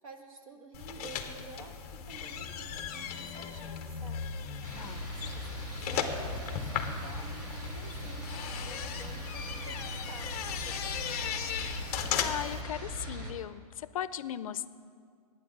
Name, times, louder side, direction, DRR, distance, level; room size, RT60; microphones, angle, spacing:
voice 1, 0.0-4.2 5.1-10.3 10.6-11.4, right 4 dB, 65° right, 4 dB, 1.6 m, -50 dB
sound 1, 0.7-12.6, left 7 dB, 25° left, 0.7 m, -37 dB
sound 2, 4.6-13.3, left 1 dB, 30° right, 1.6 m, -40 dB
voice 2, 4.8-5.1 12.2-14.7, left 10 dB, 65° left, 15 dB, 0.4 m, -37 dB
11.5 x 9.2 x 6.5 m, 2.1 s
hypercardioid pair, 175°, 19 cm